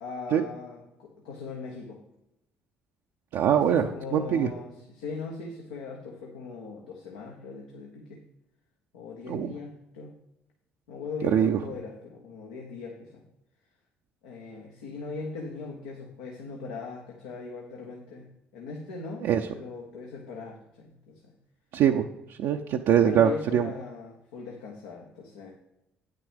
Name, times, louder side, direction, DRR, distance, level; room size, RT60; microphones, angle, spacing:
voice 1, 0.0-2.0 3.5-8.2 8.9-10.1 10.9-13.2 14.2-18.3 18.5-19.3 19.5-21.3 22.9-25.5, left 4 dB, 90° left, 0 dB, 1.1 m, -39 dB
voice 2, 3.3-3.8 4.1-4.5 9.3-9.5 11.2-11.6 19.2-19.4 21.7-22.1 22.4-23.7, right 9 dB, 70° right, 3 dB, 0.5 m, -22 dB
8.9 x 6.0 x 5.0 m, 0.86 s
hypercardioid pair, 65°, 5 cm